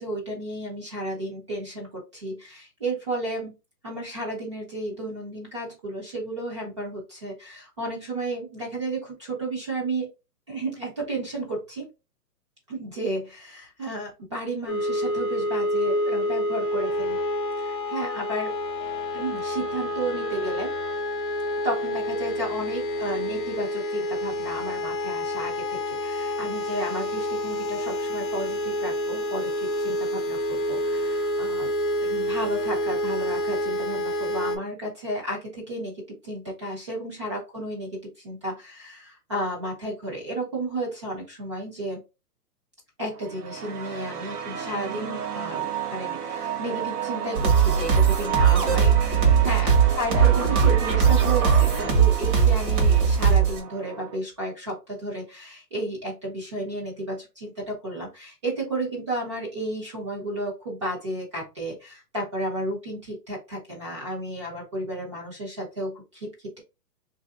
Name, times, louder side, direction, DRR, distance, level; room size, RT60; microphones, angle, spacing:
voice 1, 0.0-3.5 3.8-10.1 10.5-11.9 12.7-17.2 17.6-18.5 19.1-20.7 21.6-31.7 32.0-42.0 43.0-66.6, right 1 dB, 20° right, -3 dB, 0.6 m, -33 dB
sound 1, 14.7-34.6, left 1 dB, 35° left, 0.5 m, -28 dB
sound 2, 43.1-54.2, right 9 dB, 70° right, 1.0 m, -32 dB
sound 3, 47.4-53.6, right 7 dB, 45° right, 1.3 m, -19 dB
2.9 x 2.7 x 3.5 m, 0.27 s
hypercardioid pair, 165°, 48 cm